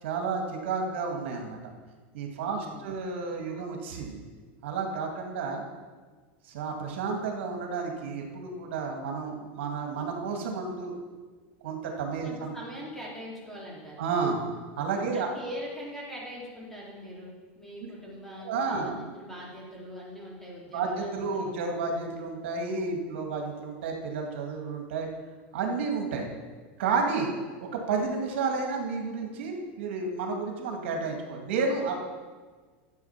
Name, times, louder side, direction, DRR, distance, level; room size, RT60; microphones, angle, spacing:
voice 1, 0.0-1.7 2.1-4.2 4.6-5.6 6.4-10.9 11.6-12.5 14.0-14.4 14.8-15.3 17.8-17.9 18.4-19.0 20.7-25.1 25.5-26.3 26.8-27.3 27.6-32.0, right 4 dB, 80° right, 2 dB, 2.1 m, -31 dB
voice 2, 2.4-2.9 12.2-14.0 15.1-21.5, equal, 5° left, -5 dB, 3.4 m, -42 dB
12.0 x 7.8 x 5.8 m, 1.4 s
supercardioid pair, 135°, 6 cm